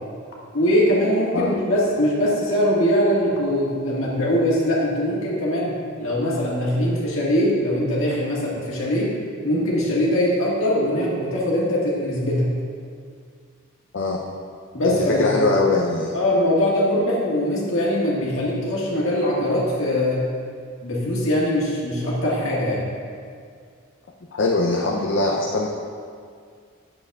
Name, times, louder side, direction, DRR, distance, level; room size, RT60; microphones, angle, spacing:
voice 1, 0.5-5.7 6.0-9.1 9.4-12.5 14.7-15.3 16.1-20.2 20.8-22.9, equal, 70° left, -5 dB, 1.7 m, -22 dB
voice 2, 14.8-16.1 24.4-25.7, left 2 dB, 55° left, -1 dB, 0.5 m, -21 dB
9.0 x 7.0 x 2.3 m, 2.2 s
head